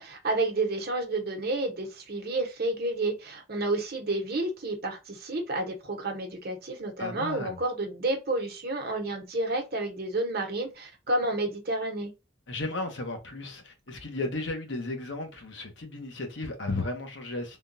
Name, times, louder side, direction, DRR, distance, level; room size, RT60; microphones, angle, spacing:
voice 1, 0.0-12.1, right 2 dB, 55° right, 1.0 m, -30 dB
voice 2, 7.0-7.6 12.5-17.6, left 2 dB, 70° left, 1.0 m, -34 dB
3.6 x 2.3 x 2.6 m
head